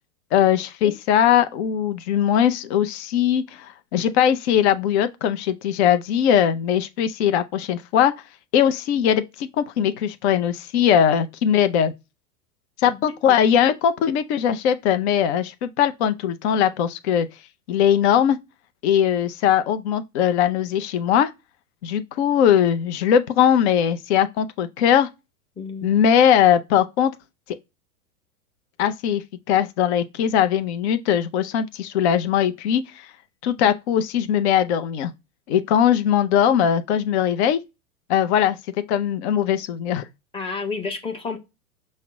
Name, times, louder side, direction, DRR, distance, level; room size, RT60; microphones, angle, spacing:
voice 1, 0.3-8.1 8.5-11.9 12.8-17.3 17.7-18.4 18.8-21.3 21.8-25.1 25.8-27.1 28.8-29.2 29.5-33.1 33.4-35.1 35.5-37.6 38.1-38.6 38.9-40.1, left 9 dB, 50° left, 0.6 m, -20 dB
voice 2, 25.6-25.9 40.3-41.4, left 4 dB, 10° left, 1.0 m, -30 dB
5.7 x 2.1 x 3.6 m
hypercardioid pair, 100°, 45 cm